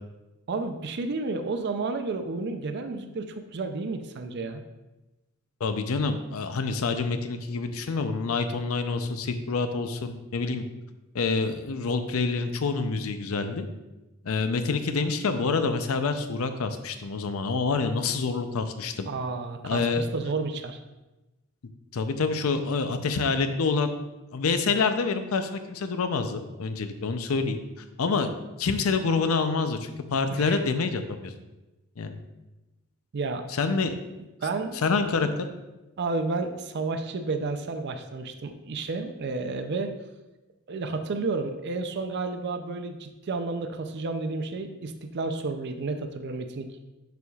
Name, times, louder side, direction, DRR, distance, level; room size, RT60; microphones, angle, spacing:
voice 1, 0.5-4.6 19.1-20.8 30.3-30.6 33.1-33.7 34.2-34.8 36.0-39.9 40.7-46.8, right 3 dB, 55° right, 7 dB, 0.5 m, -31 dB
voice 2, 5.6-10.6 11.1-13.7 14.2-19.1 19.6-20.1 21.9-23.9 24.3-27.6 28.0-28.3 28.6-31.3 32.0-32.2 33.5-34.0 34.8-35.3, left 4 dB, 80° left, 9 dB, 0.5 m, -27 dB
6.8 x 6.2 x 2.4 m, 1.0 s
head